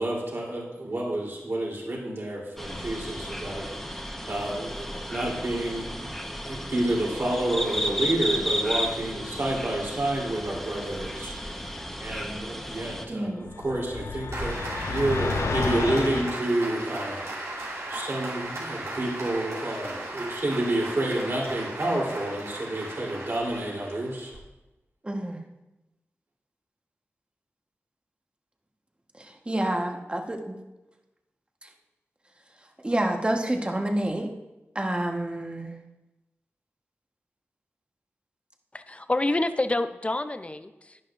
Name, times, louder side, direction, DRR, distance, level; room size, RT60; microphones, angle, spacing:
voice 1, 0.0-4.0 4.3-6.1 6.4-11.7 12.0-17.5 17.9-24.3, right 1 dB, 55° right, -3 dB, 3.4 m, -29 dB
sound 1, 2.6-13.1, equal, 5° left, 1.1 m, -33 dB
voice 2, 13.1-13.4 25.0-25.4 29.2-30.6 31.6-31.7 32.8-34.3 34.7-35.8, right 1 dB, 25° right, 3 dB, 1.3 m, -28 dB
sound 2, 13.5-16.4, left 4 dB, 75° left, 0.5 m, -31 dB
Applause, 14.3-24.4, right 2 dB, 90° right, 3.4 m, -36 dB
voice 3, 38.7-41.0, left 2 dB, 25° left, 10 dB, 0.6 m, -28 dB
11.0 x 11.0 x 2.6 m, 1.0 s
wide cardioid pair, 65°, 5 cm